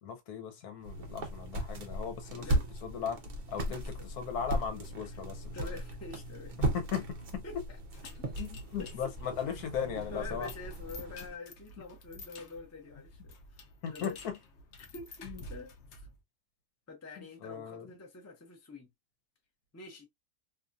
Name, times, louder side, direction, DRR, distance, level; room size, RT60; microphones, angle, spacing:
voice 1, 0.0-2.5 2.8-3.2 3.5-5.6 6.6-7.0 7.3-7.4 8.4-10.5 13.8-14.4 15.2-15.4 17.2-17.9, left 7 dB, 80° left, 1.3 m, -37 dB
sound 1, 0.8-11.3, right 1 dB, 55° right, 0.5 m, -37 dB
voice 2, 5.5-6.7 7.4-7.8 8.8-8.9 10.1-14.2 14.8-16.1 16.9-18.9 19.7-20.1, left 3 dB, 20° left, 0.4 m, -47 dB
sound 2, 7.9-16.2, left 2 dB, 60° left, 0.8 m, -51 dB
2.8 x 2.6 x 2.3 m
omnidirectional pair, 1.6 m